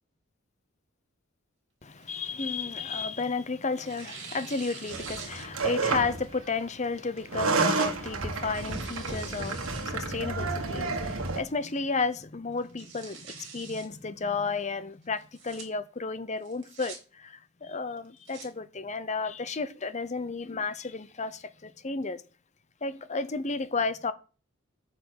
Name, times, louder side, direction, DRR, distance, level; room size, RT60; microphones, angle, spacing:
voice 1, 1.8-22.2 22.8-24.1, left 4 dB, 35° left, 0.7 m, -33 dB
Tearing, 2.0-3.3 3.8-5.8 6.2-6.3 7.2-7.5 8.1-9.9 10.3-10.4 10.9-11.3 11.7-11.8 12.1-12.2 12.6-13.9 15.2-15.6 16.4-17.0 18.0-18.5, right 6 dB, 60° right, 3.4 m, -45 dB
sound 1, 4.9-6.3 7.2-11.4, right 3 dB, 80° right, 1.7 m, -30 dB
9.7 x 5.7 x 6.5 m
head